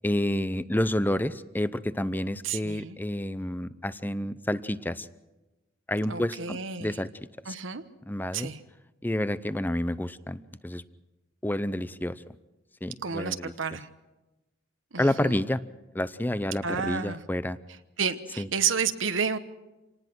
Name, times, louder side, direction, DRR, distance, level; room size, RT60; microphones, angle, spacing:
voice 1, 0.0-5.1 5.9-7.1 7.5-7.6 8.1-8.5 9.0-10.8 11.4-12.2 12.8-13.5 15.0-15.6 15.9-17.6 18.4-18.5, left 1 dB, 10° left, 15 dB, 0.7 m, -29 dB
voice 2, 2.4-3.0 6.1-6.9 7.5-7.8 8.3-8.6 13.0-13.9 14.9-15.4 16.6-17.2 18.0-19.4, right 6 dB, 85° right, 9 dB, 1.1 m, -30 dB
27.0 x 19.0 x 6.2 m, 1.1 s
head